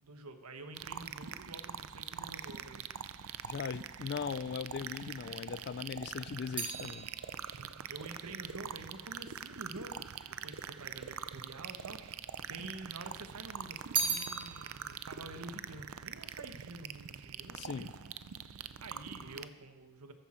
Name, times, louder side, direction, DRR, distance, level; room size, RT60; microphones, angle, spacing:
voice 1, 0.0-2.9 7.6-17.9 18.8-20.1, right 2 dB, 90° right, 7 dB, 1.1 m, -48 dB
sound 1, 0.8-19.5, right 8 dB, 70° right, 0.5 m, -44 dB
voice 2, 3.4-7.1 17.6-17.9, left 6 dB, 50° left, 17 dB, 0.3 m, -39 dB
sound 2, 6.5-10.0 10.8-11.6 11.9-13.0 13.4-16.9 17.2-17.7, right 5 dB, 20° right, 1.5 m, -40 dB
14.0 x 10.0 x 4.4 m, 1.2 s
head